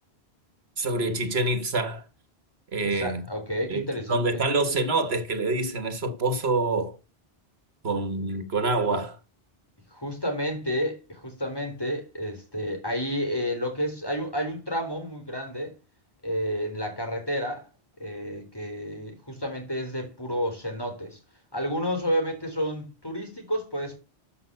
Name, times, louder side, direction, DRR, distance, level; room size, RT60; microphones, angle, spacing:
voice 1, 0.8-2.0 2.7-3.2 3.7-7.0 7.8-9.2, right 2 dB, 80° right, 1.8 m, -26 dB
voice 2, 2.8-4.4 9.9-15.7 16.2-17.7 18.0-21.2 21.5-24.0, equal, 20° left, 3.9 m, -30 dB
13.5 x 5.6 x 6.8 m
omnidirectional pair, 1.1 m